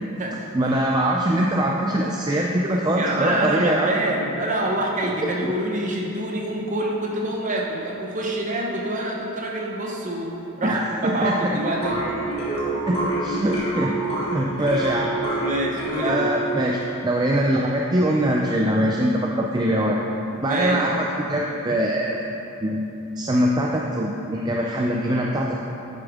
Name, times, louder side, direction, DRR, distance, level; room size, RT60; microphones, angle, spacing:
voice 1, 0.5-3.9 5.0-5.5 10.6-11.6 12.9-13.9 14.3-15.1 16.0-20.0 20.4-22.2 22.6-22.8 23.2-25.5, right 1 dB, 20° right, -1 dB, 0.3 m, -23 dB
voice 2, 2.9-12.0 15.4-16.3 20.4-20.9, right 1 dB, 35° right, -1 dB, 0.8 m, -26 dB
sound 1, 11.8-16.6, right 2 dB, 25° left, 1.4 m, -27 dB
8.6 x 7.0 x 3.6 m, 2.9 s
head